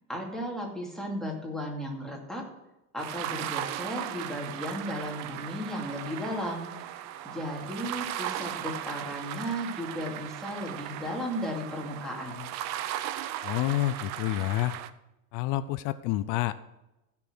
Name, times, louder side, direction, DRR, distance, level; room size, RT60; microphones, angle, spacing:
voice 1, 0.1-2.4 2.9-7.0 7.3-12.5, equal, ahead, -2 dB, 2.5 m, -35 dB
sound 1, 3.0-14.9, right 12 dB, 40° right, 0.6 m, -37 dB
voice 2, 13.4-14.7 15.3-16.6, left 14 dB, 50° left, 14 dB, 0.6 m, -28 dB
15.5 x 6.1 x 6.1 m, 0.93 s
supercardioid pair, 150°, 42 cm